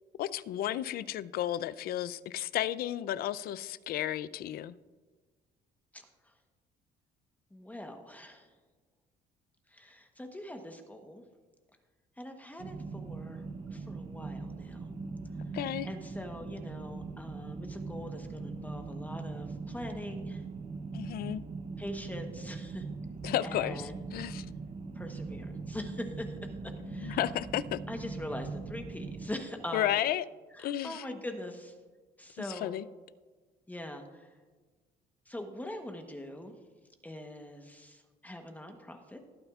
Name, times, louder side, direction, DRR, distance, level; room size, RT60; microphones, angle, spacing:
voice 1, 0.2-4.7 15.5-15.9 20.9-21.4 23.2-23.8 24.1-24.5 27.0-27.8 29.7-30.2 30.6-31.0 32.4-32.8, left 12 dB, 65° left, 0.4 m, -33 dB
voice 2, 5.9-6.3 7.5-8.5 9.7-11.2 12.2-13.4 13.7-14.9 15.8-20.4 21.8-22.9 23.4-24.0 24.9-27.3 27.9-30.0 30.5-31.7 32.2-32.8 33.7-34.4 35.3-36.5 37.0-39.2, left 1 dB, 10° left, 1.0 m, -43 dB
sound 1, 12.6-29.3, right 4 dB, 35° right, 0.8 m, -41 dB
19.0 x 8.8 x 2.4 m
cardioid pair, 110°, 17 cm